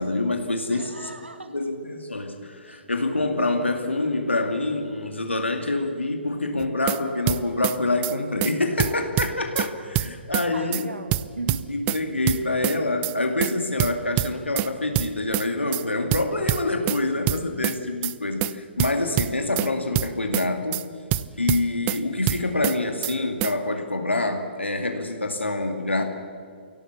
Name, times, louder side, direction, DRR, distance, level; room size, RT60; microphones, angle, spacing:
voice 1, 0.0-0.8 1.5-10.8 11.7-20.8 21.4-26.0, left 2 dB, 90° left, 4 dB, 2.5 m, -26 dB
voice 2, 0.7-1.5 2.6-2.9 9.2-9.6 10.5-11.7, right 2 dB, 85° right, 8 dB, 1.8 m, -38 dB
sound 1, 6.6-7.0 7.3-7.8 8.0-8.1 8.4-8.5 8.8-9.7 9.9-10.5 10.7-10.8 11.1-12.0 12.3-12.8 13.0-13.1 13.4-13.5 13.8-14.7 15.0-15.5 15.7-15.8 16.1-17.0 17.3-17.8 18.0-18.1 18.4-18.5 18.8-19.7 20.0-20.5 20.7-20.8 21.1-22.0 22.3-22.8 23.0-23.1 23.4-23.5, right 15 dB, 25° right, 0.6 m, -25 dB
24.5 x 17.0 x 6.9 m, 2.2 s
figure-of-eight pair, 130°, 6 cm